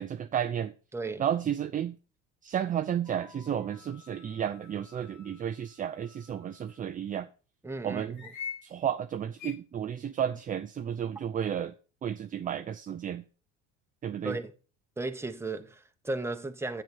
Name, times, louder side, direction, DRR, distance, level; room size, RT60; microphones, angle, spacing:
voice 1, 0.0-0.7 1.2-2.0 2.4-7.3 7.8-8.2 8.6-11.7 12.0-13.2 14.0-14.4, right 9 dB, 25° right, 0.4 m, -32 dB
voice 2, 0.9-1.2 7.6-8.3 14.2-14.5 15.0-16.8, right 2 dB, 5° right, 1.0 m, -35 dB
sound 1, 3.0-6.9 8.1-8.6 9.4-9.6, left 7 dB, 50° left, 1.7 m, -46 dB
8.0 x 7.7 x 5.4 m
cardioid pair, 115°, 36 cm